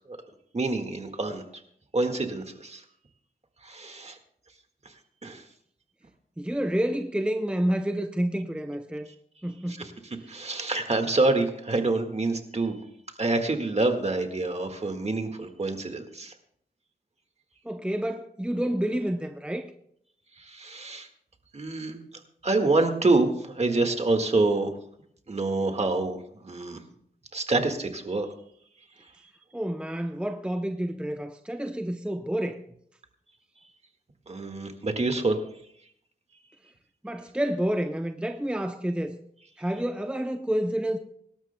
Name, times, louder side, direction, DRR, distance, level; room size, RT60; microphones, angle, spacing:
voice 1, 0.5-1.4 1.9-2.8 3.6-4.2 5.2-5.4 10.3-12.8 13.2-16.3 20.5-21.1 21.5-22.0 22.4-24.7 25.3-26.2 26.4-26.8 27.3-28.3 34.3-35.4, right 2 dB, 40° right, 1.7 m, -26 dB
voice 2, 6.4-9.1 9.4-9.8 17.6-19.7 29.5-32.6 37.0-39.2 39.6-41.0, right 1 dB, 5° right, 0.7 m, -29 dB
25.0 x 12.5 x 2.2 m
wide cardioid pair, 85°, 16 cm